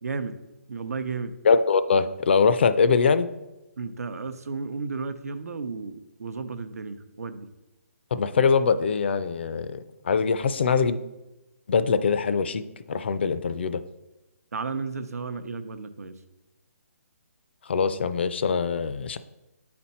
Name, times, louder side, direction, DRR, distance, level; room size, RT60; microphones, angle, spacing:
voice 1, 0.0-0.3 0.7-1.3 3.8-7.5 14.5-16.2, right 4 dB, 90° right, 10 dB, 0.7 m, -33 dB
voice 2, 1.4-3.3 8.1-9.8 10.0-11.0 11.7-13.8 17.7-19.2, left 5 dB, 45° left, 12 dB, 0.4 m, -23 dB
8.5 x 4.3 x 4.2 m, 1.0 s
hypercardioid pair, 170°, 8 cm